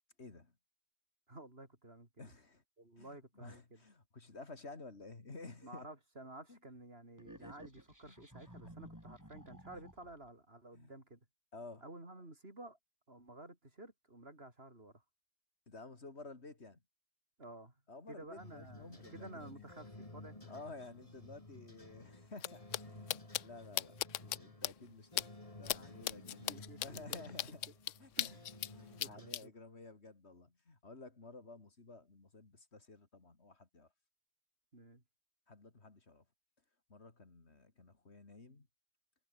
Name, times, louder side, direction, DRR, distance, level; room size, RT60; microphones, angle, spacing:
voice 1, 0.2-0.5 2.2-2.6 3.0-5.9 6.5-6.6 7.4-7.5 8.1-8.2 8.6-8.7 9.7-9.8 10.7-10.9 11.5-11.8 15.7-16.8 17.9-19.7 20.5-27.7 28.0-28.3 28.7-33.9 35.5-36.2 36.9-38.7, left 3 dB, 60° left, 3.1 m, -53 dB
voice 2, 1.3-2.3 2.8-3.8 5.6-11.2 11.8-12.8 13.1-15.0 17.4-17.8 18.1-20.5 26.5-27.2 28.2-28.4 29.0-29.5 34.7-35.0, right 2 dB, 55° right, 5.3 m, -53 dB
sound 1, 7.2-10.3, equal, 15° right, 6.2 m, -55 dB
sound 2, 18.4-29.4, left 2 dB, 30° left, 3.0 m, -54 dB
sound 3, 22.4-22.5 22.7-22.8 23.1-23.4 23.8-24.4 24.6-24.7 25.2-25.3 25.7-25.8 26.1-28.7 29.0-29.4, left 12 dB, 85° left, 1.0 m, -36 dB
omnidirectional pair, 1.3 m